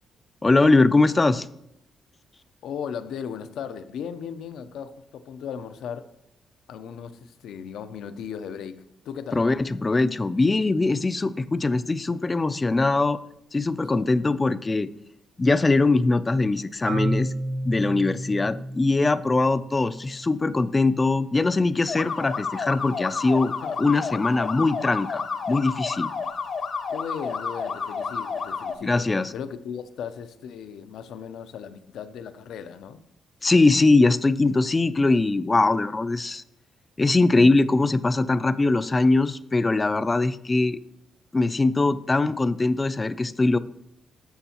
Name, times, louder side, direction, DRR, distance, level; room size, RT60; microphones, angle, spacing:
voice 1, 0.4-1.5 9.3-13.2 13.5-14.9 15.4-17.3 17.6-23.5 23.8-26.1 28.8-29.3 33.4-36.4 37.0-40.8 41.3-43.6, left 3 dB, 20° left, 15 dB, 0.3 m, -21 dB
voice 2, 2.6-6.1 6.7-9.5 13.8-14.1 19.3-19.6 23.6-23.9 26.9-33.0, left 7 dB, 80° left, 11 dB, 0.5 m, -37 dB
Marimba xylophone, 16.9-20.7, right 1 dB, 75° right, 1.3 m, -31 dB
sound 1, 21.9-28.7, left 5 dB, 50° left, 0.7 m, -30 dB
13.0 x 6.2 x 2.9 m, 0.79 s
cardioid pair, 130°, 0 cm